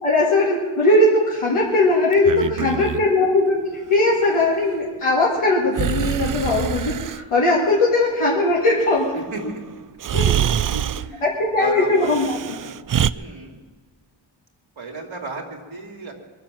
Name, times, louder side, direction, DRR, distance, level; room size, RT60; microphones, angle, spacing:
voice 1, 0.0-9.5 10.1-10.3 10.6-10.7 11.2-12.4, left 2 dB, 85° left, -5 dB, 2.2 m, -19 dB
Breathing, 2.1-3.0 5.7-7.2 9.4-9.5 10.0-11.1 12.0-13.1, right 10 dB, 45° right, 0.4 m, -24 dB
voice 2, 9.3-9.6 10.7-11.2 11.6-12.1 13.1-13.6 14.8-16.1, right 3 dB, 70° right, 0 dB, 2.5 m, -33 dB
21.5 x 7.4 x 7.5 m, 1.4 s
cardioid pair, 55°, 48 cm